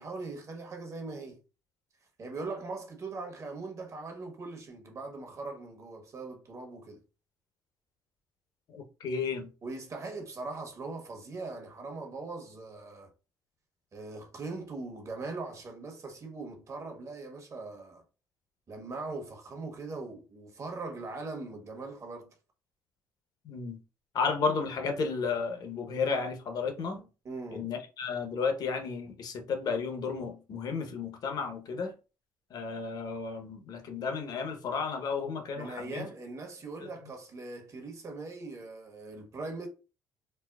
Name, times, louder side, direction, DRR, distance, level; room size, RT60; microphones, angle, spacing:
voice 1, 0.0-1.4 2.2-7.0 9.6-13.1 13.9-18.0 18.7-22.3 27.2-27.7 35.6-39.7, right 3 dB, 40° right, 1.1 m, -40 dB
voice 2, 8.7-9.5 23.4-23.8 24.1-27.1 27.5-31.9 32.5-36.0 36.8-36.9, left 5 dB, 60° left, 0.8 m, -33 dB
4.2 x 2.1 x 2.3 m
supercardioid pair, 75°, 8 cm